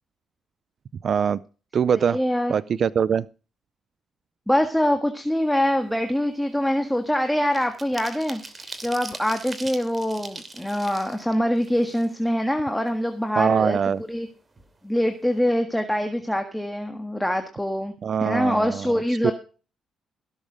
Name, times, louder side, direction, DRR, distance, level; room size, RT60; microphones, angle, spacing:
voice 1, 1.0-1.4 1.7-2.2 2.5-3.3 13.4-14.0 18.0-18.9 19.2-19.3, right 7 dB, 55° right, 18 dB, 0.5 m, -22 dB
voice 2, 1.9-2.5 4.5-8.4 8.8-13.8 14.1-14.3 14.8-17.9 18.2-19.3, equal, 5° left, 6 dB, 1.6 m, -24 dB
sound 1, 5.5-5.7 6.1-12.5 12.9-13.0 13.3-14.3 14.6-14.7 15.0-15.3, right 3 dB, 25° right, 2.9 m, -41 dB
16.5 x 7.3 x 5.0 m, 0.35 s
cardioid pair, 90°, 0 cm